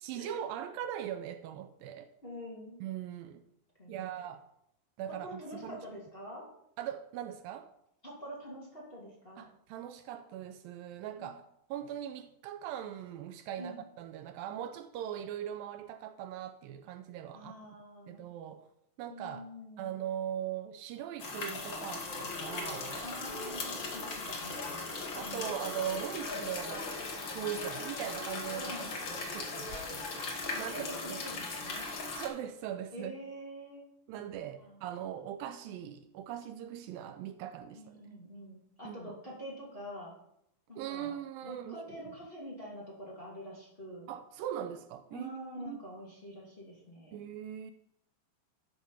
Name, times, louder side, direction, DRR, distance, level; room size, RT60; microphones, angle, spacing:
voice 1, 0.0-2.1 2.8-3.4 3.9-4.5 5.0-5.8 6.8-7.7 9.4-11.4 11.7-17.5 18.1-18.7 19.0-19.4 19.8-23.1 25.1-27.0 27.3-30.3 30.6-31.2 32.2-33.1 34.1-37.9 38.9-39.0 40.8-42.0 44.1-45.8 47.1-47.7, right 10 dB, 80° right, 2.2 m, -40 dB
voice 2, 2.2-2.8 3.8-4.1 5.1-6.5 8.0-9.5 11.2-11.3 13.6-13.9 17.3-18.3 19.1-19.9 23.0-24.9 25.2-25.6 27.4-27.5 28.6-28.9 30.5-31.9 32.9-33.9 34.6-34.8 37.7-40.2 40.7-41.2 41.4-44.1 45.1-47.2, equal, 20° left, 2.3 m, -46 dB
sound 1, 21.2-32.3, left 3 dB, 55° left, 1.4 m, -38 dB
12.5 x 5.1 x 5.7 m
omnidirectional pair, 4.2 m